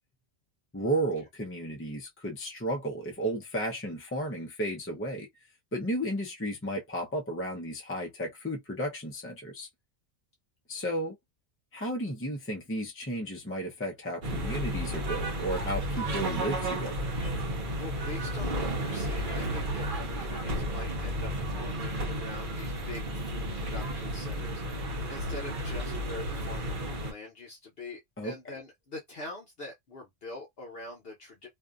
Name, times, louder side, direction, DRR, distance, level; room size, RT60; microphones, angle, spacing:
voice 1, 0.7-5.3 5.7-9.7 10.7-11.2 11.7-17.1 28.2-28.5, right 1 dB, 15° left, 0.6 m, -33 dB
sound 1, 14.2-27.1, right 1 dB, 50° right, 0.9 m, -32 dB
voice 2, 17.7-31.5, left 2 dB, 60° left, 1.0 m, -44 dB
2.6 x 2.5 x 2.4 m
omnidirectional pair, 1.2 m